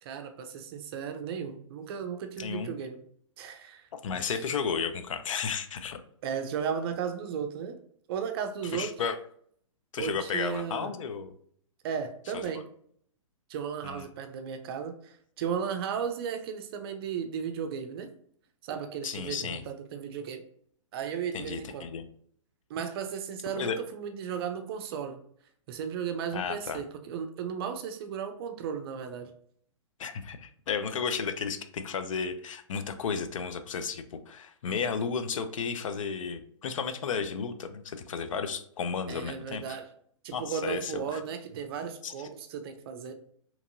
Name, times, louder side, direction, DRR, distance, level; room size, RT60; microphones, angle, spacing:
voice 1, 0.0-3.0 3.4-4.4 6.2-7.8 8.1-8.9 10.0-10.9 11.8-12.7 13.5-18.1 18.6-20.4 20.9-21.9 22.7-25.2 25.7-29.3 39.1-39.9 40.2-43.1, right 7 dB, 45° right, 7 dB, 0.5 m, -35 dB
voice 2, 2.4-2.7 4.0-6.0 8.7-9.2 9.9-11.3 12.3-12.4 13.8-14.0 19.0-19.6 21.3-22.1 23.5-23.8 26.3-26.8 30.0-39.6 40.3-40.9 42.0-42.1, left 6 dB, 75° left, 9 dB, 0.4 m, -33 dB
2.9 x 2.6 x 2.5 m, 0.62 s
hypercardioid pair, 130°, 17 cm